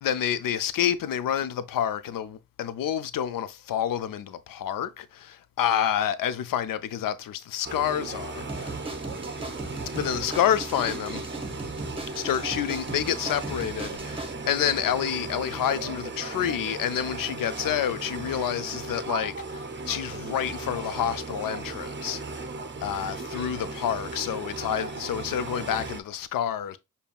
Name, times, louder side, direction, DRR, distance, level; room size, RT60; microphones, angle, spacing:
voice 1, 0.0-8.7 9.9-11.2 12.1-22.2 22.8-26.8, left 10 dB, 70° left, 0.5 m, -28 dB
sound 1, 7.6-26.0, right 3 dB, 35° right, 0.6 m, -36 dB
sound 2, 8.5-14.3, right 2 dB, 15° right, 0.9 m, -38 dB
5.0 x 2.8 x 2.3 m
supercardioid pair, 45°, 35 cm